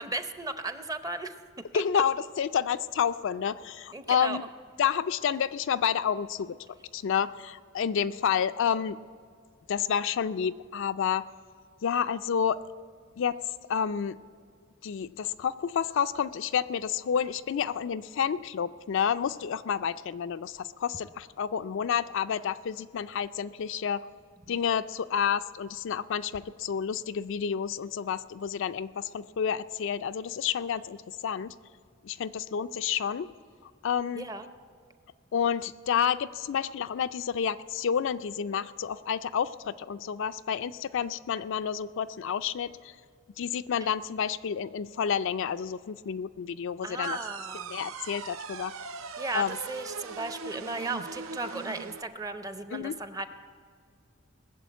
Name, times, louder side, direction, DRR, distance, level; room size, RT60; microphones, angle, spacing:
voice 1, 0.0-2.0 3.9-4.4 24.5-24.6 34.1-34.5 46.8-47.7 49.2-53.3, right 2 dB, 15° right, 9 dB, 0.7 m, -36 dB
voice 2, 1.7-4.5 4.8-6.6 6.9-9.0 9.7-11.3 11.8-12.6 13.2-13.4 13.7-14.2 14.8-24.1 24.5-31.5 32.0-33.3 33.8-34.3 35.3-42.9 43.4-47.2 47.7-48.7 49.3-49.6 52.7-53.0, left 7 dB, 65° left, 12 dB, 0.4 m, -29 dB
sound 1, 47.0-52.0, right 5 dB, 80° right, 0.6 m, -40 dB
20.0 x 7.1 x 8.2 m, 2.2 s
head